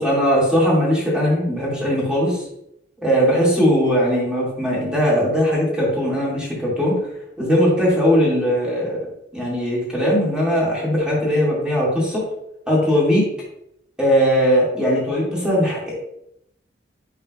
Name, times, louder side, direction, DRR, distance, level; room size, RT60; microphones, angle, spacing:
voice 1, 0.0-2.4 3.0-7.0 7.4-9.0 9.3-12.2 12.7-13.2 14.0-15.9, equal, 5° right, -6 dB, 2.5 m, -19 dB
9.4 x 4.3 x 2.5 m, 0.77 s
head